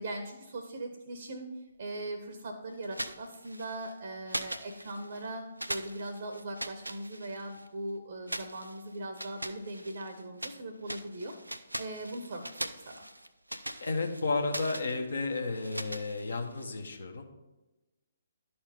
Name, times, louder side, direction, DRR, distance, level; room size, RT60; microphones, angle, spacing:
voice 1, 0.0-13.0, right 1 dB, 50° right, 4 dB, 0.8 m, -40 dB
sound 1, 2.8-3.9 4.3-5.3 5.6-7.7 8.3-10.6 10.9-16.6, right 1 dB, 85° right, 0.5 m, -41 dB
voice 2, 13.8-17.3, left 3 dB, 65° left, 4 dB, 1.0 m, -32 dB
11.0 x 4.4 x 5.3 m, 1.1 s
figure-of-eight pair, 130°, 0 cm